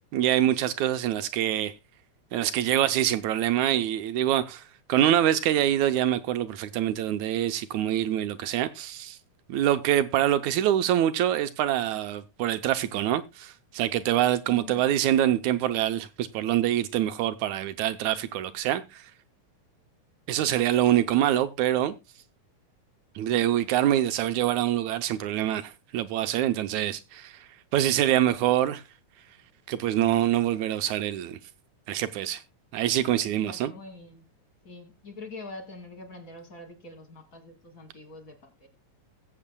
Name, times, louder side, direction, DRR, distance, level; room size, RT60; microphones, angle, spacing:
voice 1, 0.1-1.7 2.3-4.6 4.9-9.2 9.5-19.0 20.3-21.9 23.2-27.4 27.7-28.8 29.7-31.4 31.9-32.4 32.7-33.7, right 12 dB, 75° right, 1.9 m, -25 dB
voice 2, 14.5-14.8 33.2-34.3 34.6-38.7, left 3 dB, 35° left, 1.6 m, -44 dB
21.0 x 7.8 x 2.2 m
omnidirectional pair, 3.8 m